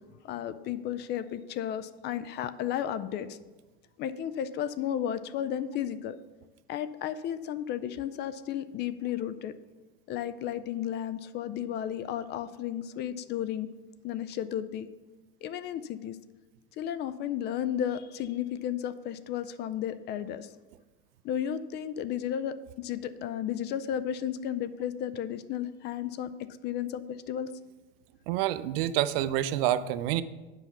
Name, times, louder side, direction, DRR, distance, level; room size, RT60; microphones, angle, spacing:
voice 1, 0.2-3.4 4.0-6.2 6.7-9.5 10.1-13.7 14.0-14.9 15.4-16.2 16.8-20.5 21.2-26.3 26.6-27.5, left 10 dB, 35° left, 14 dB, 0.4 m, -33 dB
voice 2, 28.3-30.2, right 13 dB, 65° right, 15 dB, 0.6 m, -27 dB
8.1 x 5.6 x 5.9 m, 1.2 s
supercardioid pair, 130°, 31 cm